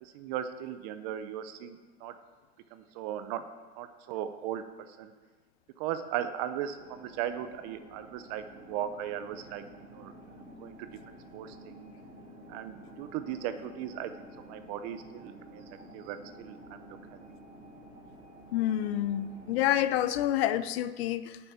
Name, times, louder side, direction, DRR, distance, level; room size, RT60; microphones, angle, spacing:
voice 1, 0.0-2.2 2.7-3.4 3.8-5.1 5.8-10.1 10.6-11.9 12.5-14.1 14.5-15.6 15.9-17.2, right 10 dB, 30° right, 11 dB, 0.5 m, -37 dB
sound 1, 6.6-20.0, equal, 10° right, 2.6 m, -51 dB
voice 2, 18.5-21.4, left 12 dB, 50° left, 14 dB, 0.7 m, -28 dB
8.7 x 7.2 x 8.4 m, 1.3 s
supercardioid pair, 145°, 40 cm